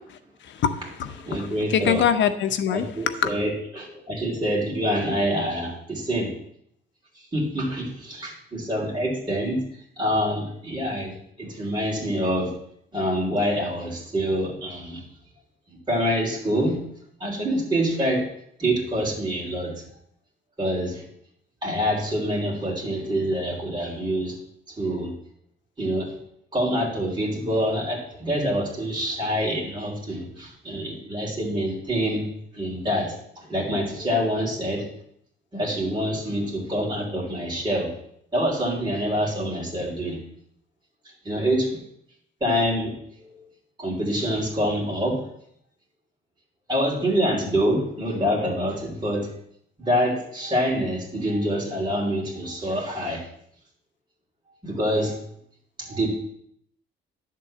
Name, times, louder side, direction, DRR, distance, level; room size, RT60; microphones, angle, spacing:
voice 1, 0.4-3.3, left 8 dB, 70° left, 8 dB, 0.8 m, -24 dB
voice 2, 1.3-2.0 2.7-6.3 7.3-9.6 10.0-12.5 12.9-15.0 15.9-16.8 17.2-18.3 18.6-19.7 20.6-21.1 21.6-24.3 24.8-25.1 25.8-26.1 26.5-32.3 32.5-33.1 33.5-34.8 35.5-37.9 38.3-40.2 41.2-41.7 42.4-43.4 43.8-45.2 46.7-49.3 49.8-53.2 54.6-55.2 55.8-56.1, equal, 25° right, -4 dB, 3.1 m, -26 dB
11.0 x 3.8 x 7.5 m, 0.70 s
cardioid pair, 90°, 20 cm